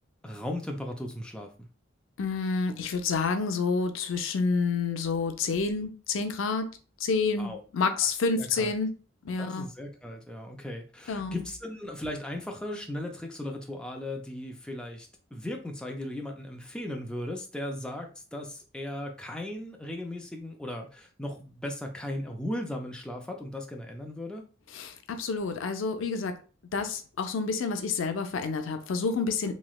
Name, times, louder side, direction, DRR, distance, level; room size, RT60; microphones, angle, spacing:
voice 1, 0.2-1.7 7.4-7.6 8.4-8.7 9.4-24.4, left 1 dB, 5° left, 2 dB, 0.4 m, -37 dB
voice 2, 2.2-6.7 7.0-8.9 9.2-9.7 11.1-11.3 24.7-26.3 26.7-29.5, left 4 dB, 85° left, 8 dB, 0.5 m, -29 dB
3.1 x 2.9 x 2.3 m, 0.36 s
head